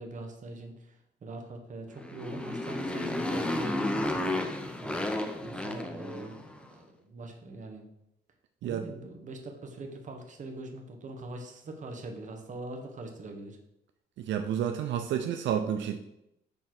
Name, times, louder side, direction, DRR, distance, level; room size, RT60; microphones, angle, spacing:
voice 1, 0.0-4.5 4.8-5.0 5.4-7.8 8.6-13.6, right 2 dB, 40° right, 3 dB, 1.2 m, -42 dB
Motorcycle, 1.9-6.6, left 1 dB, 5° left, 0.6 m, -32 dB
voice 2, 14.2-16.0, right 9 dB, 80° right, 6 dB, 0.5 m, -30 dB
7.2 x 3.2 x 5.9 m, 0.82 s
cardioid pair, 125°, 19 cm